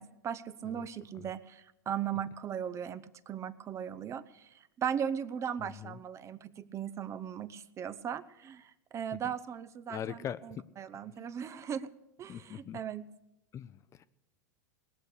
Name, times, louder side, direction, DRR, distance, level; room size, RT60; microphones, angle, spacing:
voice 1, 0.0-10.2 10.4-11.9 12.2-13.0, right 8 dB, 30° right, 15 dB, 0.6 m, -38 dB
voice 2, 5.6-6.0 9.9-10.7 11.0-11.2 12.3-12.8 13.5-14.1, left 9 dB, 30° left, 15 dB, 0.5 m, -42 dB
19.0 x 6.6 x 8.3 m, 0.92 s
hypercardioid pair, 100°, 10 cm